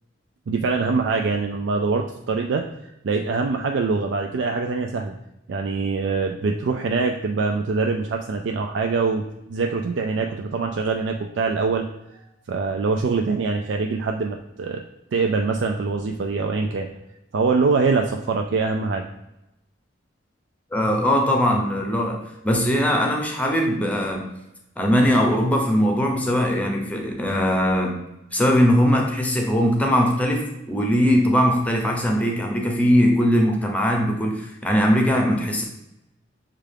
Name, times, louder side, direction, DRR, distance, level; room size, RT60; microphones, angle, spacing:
voice 1, 0.5-2.7 3.0-5.1 5.5-9.2 9.5-11.9 12.5-14.8 15.1-16.9 17.3-19.0, right 4 dB, 75° right, 3 dB, 0.4 m, -23 dB
voice 2, 20.7-24.2 24.8-27.9 28.3-35.6, equal, 10° left, 1 dB, 0.7 m, -20 dB
6.5 x 2.4 x 3.3 m, 0.89 s
head